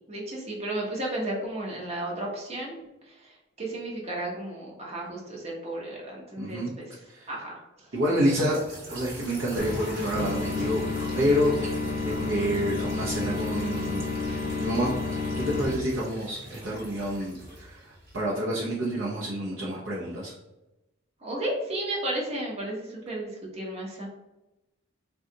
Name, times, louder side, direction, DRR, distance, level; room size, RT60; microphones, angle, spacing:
voice 1, 0.1-2.8 3.1-6.9 7.3-7.6 21.2-24.1, right 1 dB, 35° right, -3 dB, 0.8 m, -33 dB
voice 2, 6.4-6.7 7.0-7.3 7.9-8.6 8.9-10.8 11.2-11.8 12.0-15.0 15.4-20.3, equal, 75° right, -6 dB, 0.7 m, -28 dB
sound 1, 8.3-18.4, right 1 dB, 55° right, 1.2 m, -43 dB
sound 2, 9.6-15.7, left 3 dB, 40° left, 0.5 m, -30 dB
3.8 x 2.3 x 2.7 m, 0.99 s
head